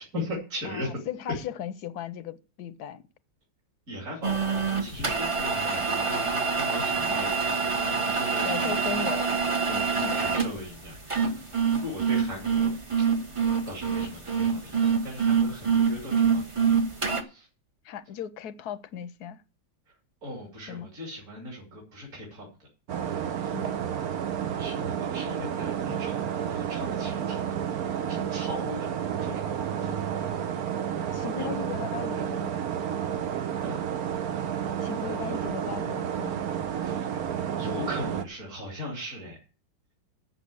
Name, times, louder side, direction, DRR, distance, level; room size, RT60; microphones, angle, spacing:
voice 1, 0.1-0.9 1.3-1.4 3.9-8.8 9.7-12.8 13.3-13.4 13.7-16.7 17.1-17.5 20.2-22.7 23.1-23.5 24.6-27.5 28.1-28.9 29.2-30.3 31.0-31.5 33.6-33.8 36.8-37.1 37.6-39.4, left 1 dB, 45° right, 3.2 m, -39 dB
voice 2, 0.6-3.0 7.1-7.2 8.4-9.3 9.7-10.2 17.8-19.4 20.7-20.9 23.5-23.7 31.1-32.5 34.8-36.4, left 9 dB, 65° left, 1.2 m, -37 dB
sound 1, 4.2-17.2, right 5 dB, 25° right, 0.8 m, -26 dB
sound 2, 22.9-38.2, right 9 dB, 60° right, 1.2 m, -31 dB
7.6 x 7.4 x 8.4 m
omnidirectional pair, 2.0 m